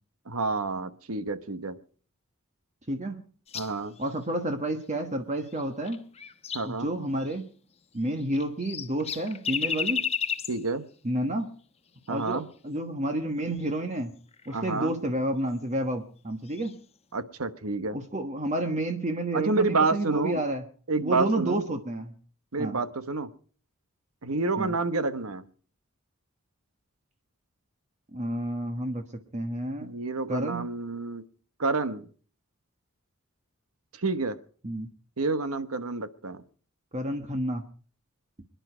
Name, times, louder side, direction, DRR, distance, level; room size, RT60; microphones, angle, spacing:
voice 1, 0.3-1.8 3.5-4.0 6.5-6.9 10.5-10.8 12.1-12.5 14.5-14.9 17.1-18.0 19.3-20.4 20.9-21.6 22.5-23.3 24.2-25.4 29.8-31.2 31.6-32.1 34.0-34.4 35.2-36.4, right 3 dB, 80° right, 12 dB, 1.1 m, -28 dB
sound 1, 3.5-4.1 5.5-6.8 7.2-7.4 8.1-10.7 12.1-12.4 13.5-13.7 14.3-14.7 16.4-16.7, left 7 dB, 30° left, 0.9 m, -34 dB
voice 2, 4.0-6.0 6.7-7.4 7.9-10.1 11.0-11.5 12.1-14.1 14.5-16.8 17.9-20.6 21.0-22.1 22.6-22.8 24.6-24.7 28.1-29.1 29.3-29.9 30.3-30.7 34.6-34.9 36.9-37.6, right 1 dB, 30° right, 6 dB, 1.3 m, -30 dB
26.0 x 10.5 x 5.0 m, 0.43 s
head